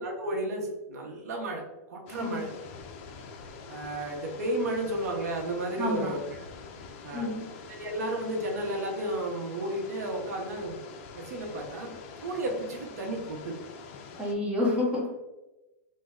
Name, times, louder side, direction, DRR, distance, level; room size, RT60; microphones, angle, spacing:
voice 1, 0.0-2.5 3.7-6.2 7.0-7.3 7.7-10.8 11.1-13.6, right 1 dB, 80° right, 1 dB, 0.7 m, -33 dB
sound 1, 2.1-14.3, left 5 dB, 50° left, 0.4 m, -45 dB
voice 2, 5.8-6.1 7.1-7.4 14.2-15.1, left 2 dB, 15° right, -4 dB, 1.0 m, -29 dB
3.1 x 2.1 x 3.5 m, 1.0 s
hypercardioid pair, 140°, 8 cm